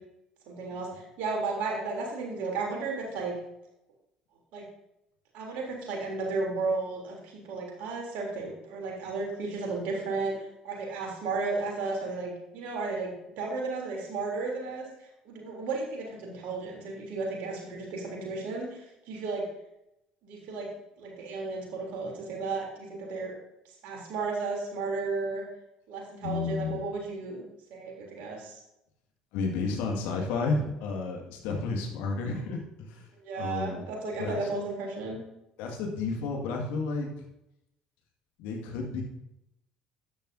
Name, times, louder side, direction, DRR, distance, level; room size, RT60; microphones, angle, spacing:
voice 1, 0.5-3.3 4.5-4.6 5.3-10.3 10.6-19.4 20.2-20.7 21.0-23.3 23.8-25.4 25.9-27.4 27.7-28.6 33.2-35.2, right 3 dB, 60° right, -1 dB, 3.3 m, -34 dB
voice 2, 26.2-26.8 29.3-33.1 33.4-33.8 34.2-34.5 35.6-37.1 38.4-39.0, left 4 dB, 60° left, 1 dB, 2.0 m, -31 dB
13.0 x 9.8 x 2.7 m, 0.86 s
figure-of-eight pair, 55°, 3 cm